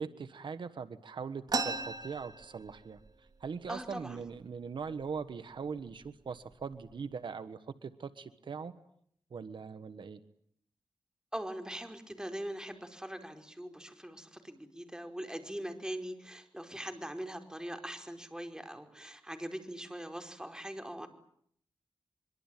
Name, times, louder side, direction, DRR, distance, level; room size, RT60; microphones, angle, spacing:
voice 1, 0.0-3.0 3.4-8.7 9.3-10.2, right 5 dB, 80° right, 11 dB, 1.4 m, -41 dB
sound 1, 1.5-3.1 3.4-3.5 3.8-4.4 5.0-5.2 5.9-6.1 6.5-7.0, right 3 dB, 55° right, 3.4 m, -36 dB
voice 2, 3.7-4.2 11.3-21.1, right 1 dB, 10° right, 6 dB, 4.9 m, -42 dB
24.5 x 23.5 x 9.1 m, 0.67 s
cardioid pair, 55°, 8 cm